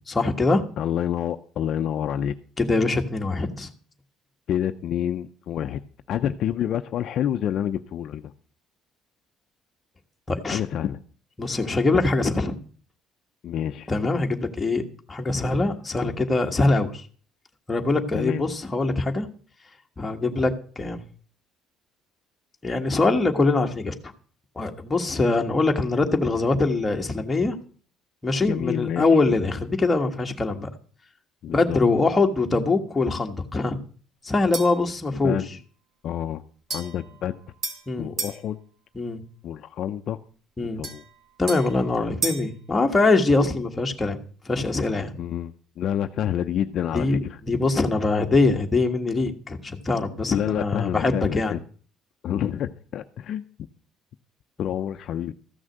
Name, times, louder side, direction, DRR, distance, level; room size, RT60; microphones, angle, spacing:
voice 1, 0.1-0.6 2.6-3.7 10.3-10.6 11.4-12.6 13.9-14.8 15.1-17.1 17.7-19.3 20.0-21.0 22.6-24.1 24.5-27.5 28.2-30.7 31.5-33.8 34.2-35.4 37.9-38.1 38.9-39.2 40.6-40.8 41.4-44.2 44.4-45.1 46.9-47.2 47.5-51.5, left 3 dB, 15° left, 3 dB, 1.5 m, -23 dB
voice 2, 0.8-2.3 4.5-5.8 6.1-8.3 10.5-11.0 13.4-13.9 18.1-18.4 28.4-29.0 31.4-31.8 35.1-35.5 36.0-36.4 36.7-37.4 38.0-38.6 39.4-40.2 40.6-41.0 45.1-47.4 50.3-51.6 52.2-53.4 54.6-55.3, left 10 dB, 50° left, 8 dB, 0.6 m, -28 dB
sound 1, 34.5-34.9 36.7-38.4 40.8-42.6, right 4 dB, 45° right, 2.5 m, -34 dB
14.5 x 6.2 x 7.8 m, 0.43 s
cardioid pair, 140°, 0 cm